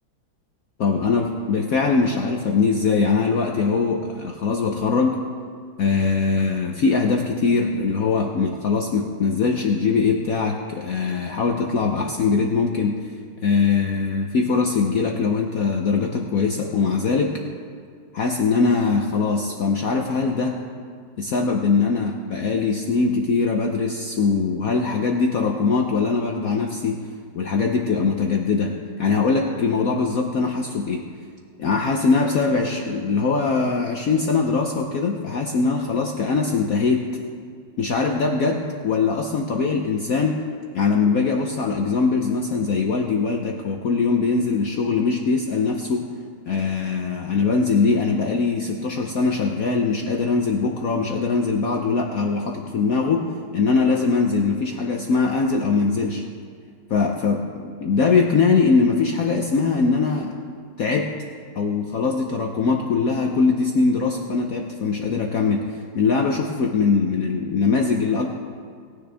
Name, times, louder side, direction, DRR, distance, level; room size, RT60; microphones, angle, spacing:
voice 1, 0.8-5.2 5.8-13.0 13.4-17.3 18.1-20.6 21.2-27.0 27.3-31.0 31.6-37.2 37.8-40.4 40.7-46.1 46.5-56.2 56.9-60.3 60.8-61.1 61.6-65.7 65.9-68.3, left 4 dB, 65° left, 2 dB, 0.8 m, -22 dB
18.0 x 9.7 x 3.4 m, 2.1 s
omnidirectional pair, 2.3 m